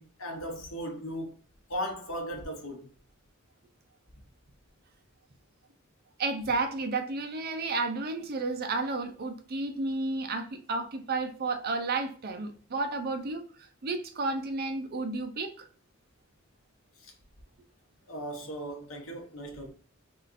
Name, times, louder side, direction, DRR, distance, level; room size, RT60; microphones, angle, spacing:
voice 1, 0.0-1.3 1.7-2.8 17.0-17.1 18.1-19.7, equal, 70° left, 1.0 m, -37 dB
voice 2, 6.2-13.4 13.8-15.7, right 3 dB, 50° right, 0.5 m, -32 dB
3.6 x 2.5 x 2.5 m
head